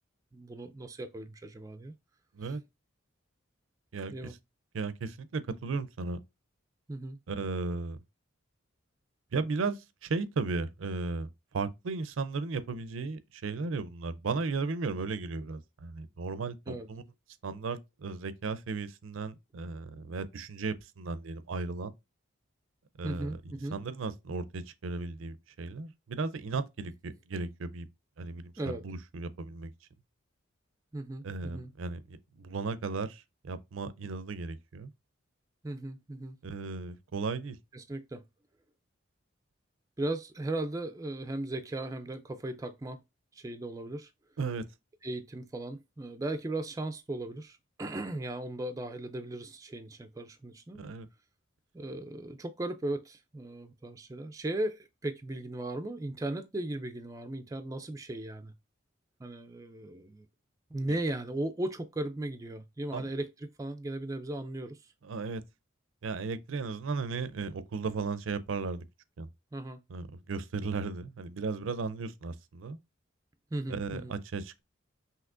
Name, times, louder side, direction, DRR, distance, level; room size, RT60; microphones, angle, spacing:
voice 1, 0.3-1.9 2.4-2.5 4.1-4.3 6.9-7.2 16.7-16.9 23.0-23.8 28.6-28.8 30.9-31.7 35.6-36.4 37.7-38.2 40.0-43.0 43.3-44.1 45.0-50.8 51.7-58.5 59.2-60.3 60.7-64.9 69.5-69.8 73.5-74.2, right 1 dB, 15° right, 0.3 m, -37 dB
voice 2, 3.9-4.3 4.7-6.2 7.3-8.0 9.3-11.3 11.5-17.0 17.4-21.9 23.0-23.4 23.7-27.9 28.2-29.7 31.2-34.9 36.4-37.6 44.4-44.6 50.8-51.1 62.9-63.1 65.0-65.4 66.0-68.8 69.2-69.3 69.9-72.8 73.7-74.6, right 4 dB, 75° right, 0.5 m, -35 dB
5.8 x 2.9 x 2.5 m
head